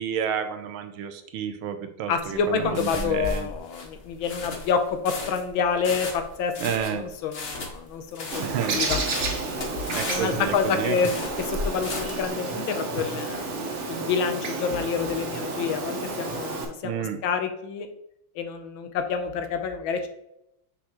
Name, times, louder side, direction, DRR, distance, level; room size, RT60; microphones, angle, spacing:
voice 1, 0.0-3.5 6.6-7.0 8.4-8.8 9.9-11.1 16.8-17.2, right 8 dB, 75° right, 8 dB, 1.4 m, -30 dB
voice 2, 2.1-6.5 6.9-9.0 10.1-11.1 11.4-13.5 13.9-17.9 18.3-20.1, left 6 dB, 75° left, 7 dB, 1.5 m, -28 dB
sound 1, 2.2-12.3, left 2 dB, 40° left, 0.9 m, -35 dB
Bird, 8.3-16.6, right 3 dB, 50° right, 0.9 m, -31 dB
6.4 x 5.8 x 3.0 m, 0.79 s
omnidirectional pair, 2.3 m